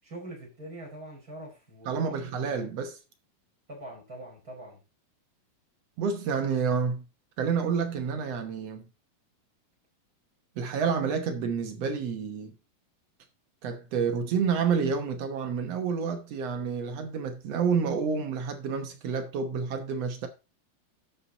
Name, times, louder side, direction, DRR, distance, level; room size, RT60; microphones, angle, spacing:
voice 1, 0.0-2.6 3.7-4.8, right 1 dB, 20° right, 5.1 m, -44 dB
voice 2, 1.8-3.0 6.0-7.0 7.4-8.8 10.6-12.5 13.6-20.3, right 6 dB, 70° right, 1.5 m, -29 dB
12.5 x 5.9 x 4.0 m
omnidirectional pair, 4.4 m